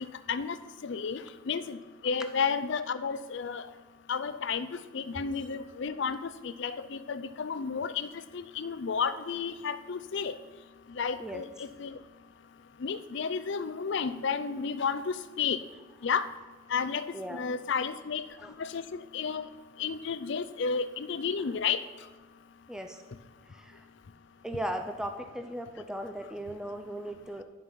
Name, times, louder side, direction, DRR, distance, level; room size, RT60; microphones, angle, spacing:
voice 1, 0.8-1.8 2.0-3.7 4.1-10.4 10.9-12.0 12.8-15.6 16.0-16.3 16.7-18.3 18.6-19.5 19.8-21.8, left 6 dB, 55° left, 13 dB, 0.4 m, -32 dB
voice 2, 11.2-11.7 17.1-17.4 18.4-18.5 22.7-23.0 23.5-23.8 24.4-27.4, right 1 dB, 5° right, 5 dB, 0.4 m, -37 dB
11.5 x 5.4 x 5.7 m, 1.3 s
head